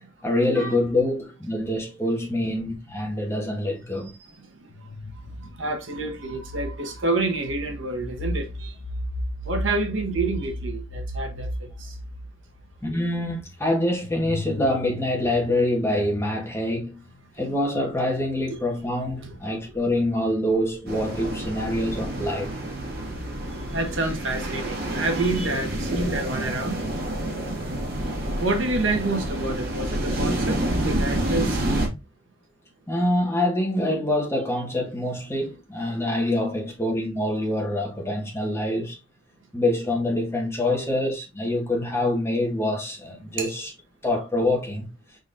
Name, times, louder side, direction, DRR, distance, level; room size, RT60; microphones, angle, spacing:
voice 1, 0.2-4.1 12.8-17.0 17.4-22.5 32.9-38.9 39.5-43.7 44.0-44.9, left 1 dB, 15° left, 1.4 m, -25 dB
voice 2, 4.3-4.9 5.4-8.8 9.4-12.0 19.2-19.3 19.7-19.8 23.5-26.8 28.4-31.6 43.4-43.5, right 2 dB, 70° right, 1.1 m, -28 dB
sound 1, 4.7-17.0 18.0-24.0, equal, 75° left, 0.8 m, -36 dB
sound 2, 20.9-31.9, right 1 dB, 50° right, 1.7 m, -28 dB
5.2 x 3.9 x 2.6 m
head